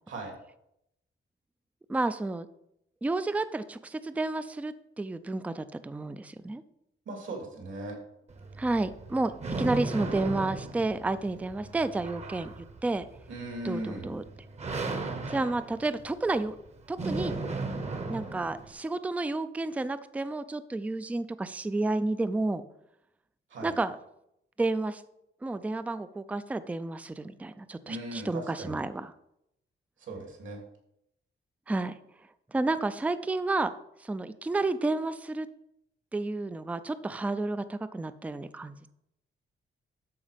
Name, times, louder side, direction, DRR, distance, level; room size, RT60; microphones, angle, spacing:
voice 1, 1.9-2.5 3.0-6.6 8.6-9.3 9.6-13.1 13.6-14.2 15.3-16.6 16.9-17.3 18.1-22.6 23.6-24.0 24.6-25.0 25.4-29.1 31.7-31.9 32.5-33.7 34.0-35.5 36.1-38.9, right 2 dB, 5° right, 13 dB, 0.3 m, -31 dB
voice 2, 7.1-8.0 13.3-14.1 23.5-23.7 27.8-28.8 30.0-30.6, right 1 dB, 70° right, 1 dB, 2.9 m, -38 dB
sound 1, 8.3-18.7, right 3 dB, 35° right, 1.0 m, -36 dB
12.5 x 5.0 x 5.1 m, 0.79 s
wide cardioid pair, 165°, 20 cm